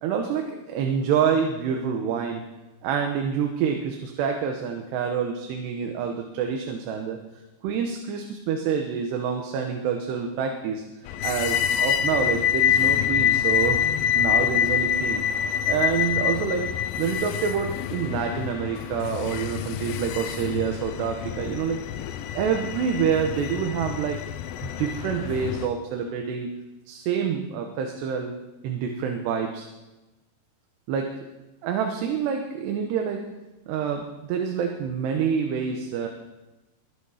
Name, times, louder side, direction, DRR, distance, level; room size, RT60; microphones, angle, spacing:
voice 1, 0.0-2.5 2.8-7.2 7.6-10.8 11.2-13.8 14.1-15.3 15.7-16.7 17.0-21.8 22.3-24.2 24.6-26.5 26.9-28.3 28.6-29.7 30.9-31.2 31.6-33.3 33.7-36.1, right 7 dB, 85° right, 3 dB, 3.2 m, -27 dB
sound 1, 11.1-25.7, left 9 dB, 85° left, 2.1 m, -26 dB
22.0 x 8.1 x 4.9 m, 1.1 s
omnidirectional pair, 4.8 m